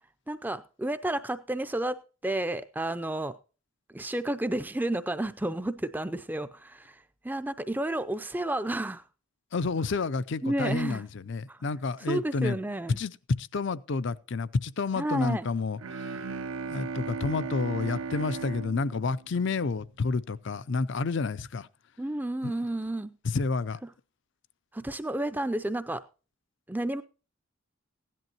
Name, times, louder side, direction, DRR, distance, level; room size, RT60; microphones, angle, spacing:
voice 1, 0.3-2.0 2.2-3.3 3.9-9.0 10.4-11.0 11.5-11.6 12.1-13.0 14.9-15.5 22.0-23.1 24.7-26.0 26.7-27.0, right 1 dB, 10° right, 0.4 m, -31 dB
voice 2, 9.5-12.6 13.0-13.1 13.4-16.1 16.7-21.7 22.4-22.6 23.2-23.8, left 4 dB, 55° left, 0.5 m, -30 dB
Bowed string instrument, 15.8-20.1, right 4 dB, 80° right, 0.7 m, -37 dB
16.5 x 11.0 x 2.9 m
head